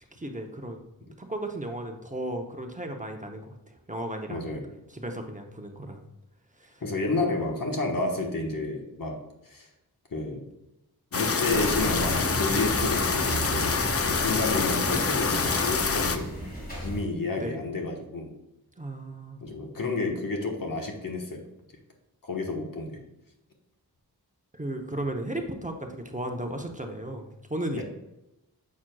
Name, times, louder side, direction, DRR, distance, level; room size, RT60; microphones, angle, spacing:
voice 1, 0.2-0.8 1.2-4.5 4.9-6.0 6.6-6.8 17.4-17.6 18.8-19.5 24.5-27.8, right 1 dB, 20° right, 3 dB, 0.7 m, -35 dB
voice 2, 4.3-4.7 6.8-9.7 10.1-10.4 11.1-13.9 14.2-16.3 16.8-18.3 19.4-21.4 22.2-23.0 27.7-27.8, left 2 dB, 60° left, 1 dB, 1.2 m, -30 dB
sound 1, 11.1-16.2, left 5 dB, 40° left, 0.5 m, -26 dB
sound 2, 11.5-17.0, equal, 25° left, 2.3 m, -34 dB
7.3 x 6.1 x 2.3 m, 0.94 s
wide cardioid pair, 75°, 38 cm